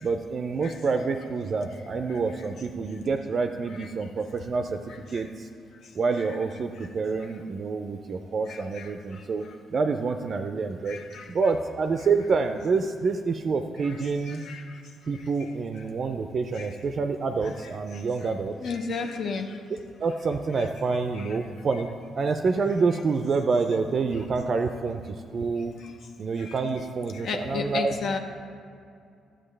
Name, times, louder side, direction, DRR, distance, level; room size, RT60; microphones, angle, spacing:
voice 1, 0.0-4.8 5.1-5.5 6.0-9.4 9.7-11.0 11.3-14.4 15.1-18.5 20.0-21.9 22.2-25.7 26.2-28.0, right 4 dB, 50° right, 6 dB, 0.4 m, -27 dB
voice 2, 8.5-8.9 10.9-11.2 14.3-14.6 16.6-16.7 18.6-19.5 26.4-26.5 27.1-28.2, left 4 dB, 65° left, 4 dB, 0.7 m, -32 dB
11.0 x 7.7 x 3.3 m, 2.4 s
cardioid pair, 90°, 0 cm